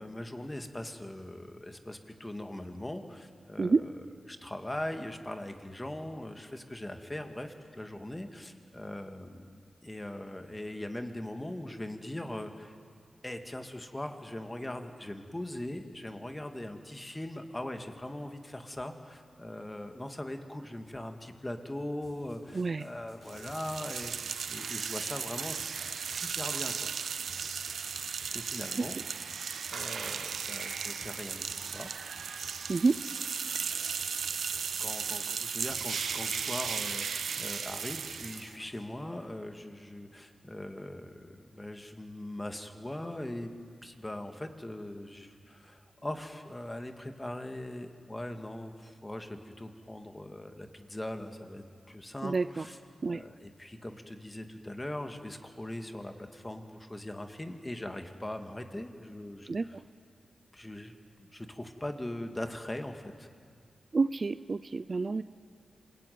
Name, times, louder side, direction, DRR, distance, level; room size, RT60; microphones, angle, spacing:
voice 1, 0.0-3.9 4.3-12.7 13.2-27.2 28.3-29.0 29.7-31.9 34.8-43.5 43.8-52.8 53.1-59.8 60.5-63.3, left 1 dB, 15° left, 5 dB, 2.1 m, -41 dB
sound 1, 22.0-38.9, left 1 dB, 55° left, 6.2 m, -56 dB
voice 2, 22.5-22.8 28.8-28.9 32.7-33.0 52.2-52.6 53.0-53.2 59.5-59.8 63.9-65.2, right 4 dB, 45° right, 14 dB, 0.6 m, -28 dB
sound 2, 23.3-38.6, right 6 dB, 80° right, 0.7 m, -36 dB
27.5 x 19.5 x 9.5 m, 2.1 s
wide cardioid pair, 85°, 0 cm